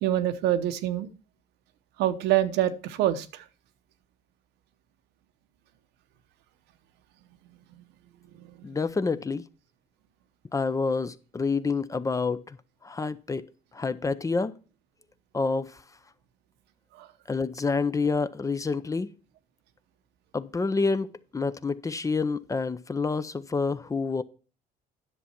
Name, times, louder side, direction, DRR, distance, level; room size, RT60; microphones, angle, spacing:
voice 1, 0.0-1.1 2.0-3.4 8.4-8.5 16.9-17.1, right 12 dB, 85° right, 0.9 m, -26 dB
voice 2, 8.6-9.4 10.5-12.6 12.8-13.4 13.7-14.5 15.3-15.8 17.3-19.1 20.3-21.1 21.3-24.2, left 4 dB, 20° left, 0.6 m, -28 dB
10.0 x 7.0 x 4.5 m
cardioid pair, 110°, 17 cm